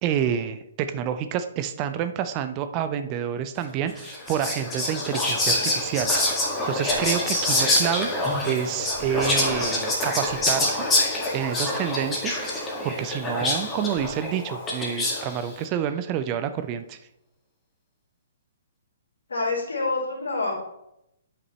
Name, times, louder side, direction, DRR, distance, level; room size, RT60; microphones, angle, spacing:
voice 1, 0.0-6.2 6.7-8.1 8.4-10.8 11.3-12.4 12.8-17.0, right 9 dB, 30° right, 10 dB, 0.6 m, -28 dB
Whispering, 4.0-15.4, left 1 dB, 15° left, 1.9 m, -26 dB
voice 2, 19.3-20.5, left 3 dB, 65° left, -2 dB, 3.1 m, -27 dB
10.5 x 6.0 x 3.2 m, 0.82 s
figure-of-eight pair, 125°, 0 cm